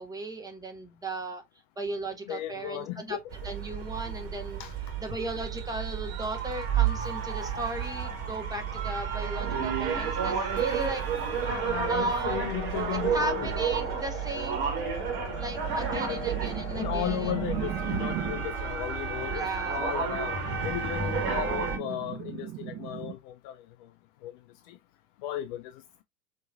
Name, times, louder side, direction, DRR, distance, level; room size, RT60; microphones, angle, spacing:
voice 1, 0.0-1.4 1.8-3.2 3.4-4.6 5.0-11.0 11.9-12.4 12.9-14.8 15.4-17.3 19.2-19.8, right 2 dB, 10° right, 1.4 m, -36 dB
voice 2, 2.3-3.2 4.6-4.7 11.4-13.5 15.7-16.2 16.7-20.4 20.6-23.6 24.2-24.3 24.7-24.8 25.2-25.8, left 12 dB, 45° left, 0.5 m, -35 dB
sound 1, 3.3-21.8, right 7 dB, 55° right, 1.6 m, -31 dB
sound 2, 9.2-20.0, left 9 dB, 70° left, 1.0 m, -44 dB
sound 3, 15.3-18.6 20.4-23.1, right 12 dB, 30° right, 0.6 m, -38 dB
5.4 x 3.0 x 2.4 m
figure-of-eight pair, 85°, 37 cm